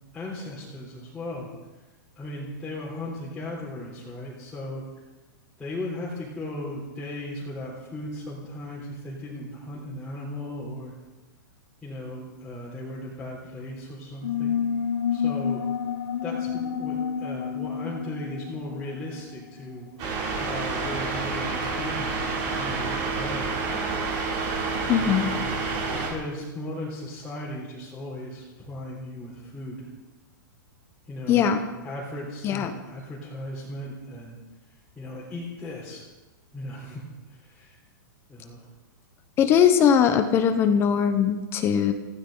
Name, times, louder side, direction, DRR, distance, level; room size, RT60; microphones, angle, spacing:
voice 1, 0.1-1.5 2.2-4.8 5.6-10.9 11.8-14.6 15.1-15.6 16.2-19.9 20.3-23.5 25.0-25.4 25.7-29.9 31.1-34.4 35.0-36.0 36.5-37.0 37.3-37.8 38.3-38.7, left 1 dB, 5° left, -9 dB, 3.6 m, -37 dB
sound 1, 14.2-19.4, left 7 dB, 75° left, 2.4 m, -29 dB
sound 2, 20.0-26.1, right 4 dB, 35° right, 4.5 m, -28 dB
voice 2, 24.9-25.3 31.3-31.6 32.4-32.7 39.4-41.9, left 8 dB, 20° left, 8 dB, 1.0 m, -20 dB
21.0 x 15.5 x 4.0 m, 1.1 s
hypercardioid pair, 155°, 11 cm